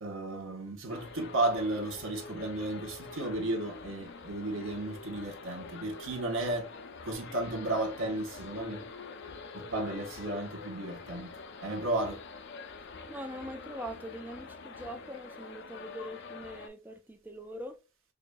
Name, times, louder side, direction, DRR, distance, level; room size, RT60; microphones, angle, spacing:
voice 1, 0.0-6.7 7.0-8.8 9.5-11.3 11.6-12.2, right 2 dB, 70° right, 1.0 m, -33 dB
sound 1, 0.9-16.7, left 4 dB, 55° left, 0.5 m, -46 dB
voice 2, 13.1-17.8, equal, 10° right, 0.5 m, -42 dB
4.7 x 2.5 x 2.2 m
head